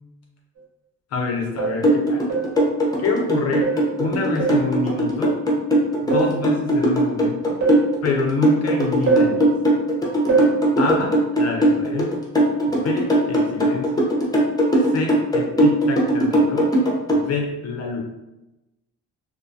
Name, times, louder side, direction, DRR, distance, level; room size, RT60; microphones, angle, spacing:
sound 1, 0.6-0.7 1.6-1.9 2.3-2.6 3.6-3.9 4.4-4.7 6.1-6.4 7.6-7.9 9.1-9.4 10.3-10.6, right 5 dB, 65° right, 0.9 m, -22 dB
voice 1, 1.1-2.2 3.0-3.7 4.0-5.3 6.0-7.6 8.0-9.5 10.8-12.2 12.7-14.1 14.8-16.7 17.1-18.0, left 4 dB, 55° left, 1 dB, 0.5 m, -27 dB
sound 2, 1.8-17.2, right 1 dB, 15° left, 0.6 m, -19 dB
2.3 x 2.2 x 2.6 m, 0.96 s
cardioid pair, 90°, 30 cm